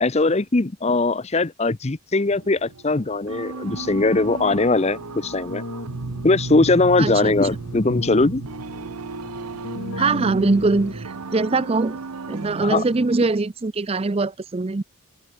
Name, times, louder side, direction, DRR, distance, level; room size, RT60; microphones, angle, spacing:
voice 1, 0.0-5.6 6.2-8.4 12.6-12.8, left 3 dB, 30° left, 0.6 m, -20 dB
sound 1, 2.3-13.3, right 3 dB, 90° right, 0.9 m, -34 dB
Keyboard (musical), 3.7-11.3, left 2 dB, 65° left, 1.5 m, -38 dB
voice 2, 7.0-7.3 10.0-12.0 12.3-14.8, right 3 dB, 25° right, 0.4 m, -22 dB
open air
head